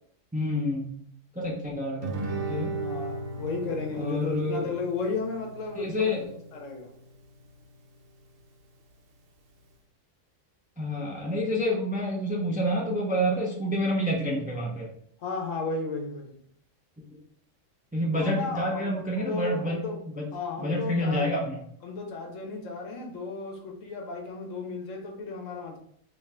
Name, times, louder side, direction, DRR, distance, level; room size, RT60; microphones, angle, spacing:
voice 1, 0.3-1.0 1.3-2.1 2.5-2.8 3.9-4.7 5.7-6.2 10.8-14.9 17.1-17.2 17.9-19.8 20.1-20.3 20.6-21.6, equal, 10° right, -3 dB, 0.5 m, -28 dB
Guitar, 2.0-7.1, right 2 dB, 80° right, 1.1 m, -36 dB
voice 2, 2.8-6.1 6.5-6.9 15.2-16.4 18.1-20.0 20.3-21.3 21.8-25.8, left 3 dB, 80° left, 2 dB, 1.2 m, -34 dB
3.2 x 3.0 x 3.6 m, 0.63 s
omnidirectional pair, 1.3 m